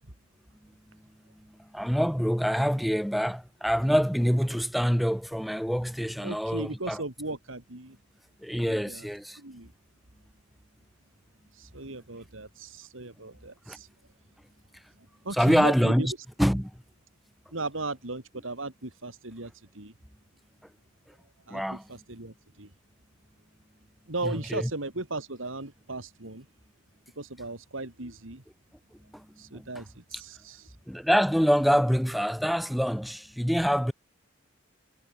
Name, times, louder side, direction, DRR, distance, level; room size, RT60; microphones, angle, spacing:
voice 1, 1.4-7.0 8.4-9.4 13.7-13.8 15.3-16.1 16.4-16.7 21.5-21.8 24.2-24.7 29.1-29.3 29.5-29.8 30.9-33.9, equal, ahead, 3.5 m, -26 dB
voice 2, 6.2-8.0 8.7-9.1 9.3-9.7 11.5-13.9 15.2-16.1 17.5-19.9 21.5-22.7 24.1-26.5 27.2-28.4 29.4-30.8, right 2 dB, 85° right, 3.3 m, -37 dB
head